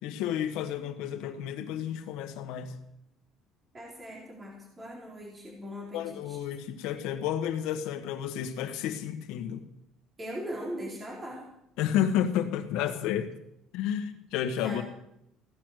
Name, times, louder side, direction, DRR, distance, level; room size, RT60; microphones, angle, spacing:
voice 1, 0.0-2.8 5.9-9.7 11.8-13.3 13.7-14.8, left 10 dB, 80° left, 7 dB, 1.7 m, -31 dB
voice 2, 3.7-6.4 10.2-11.4 14.6-14.8, equal, 20° right, -2 dB, 3.9 m, -40 dB
16.0 x 10.5 x 6.6 m, 0.80 s
cardioid pair, 165°, 0 cm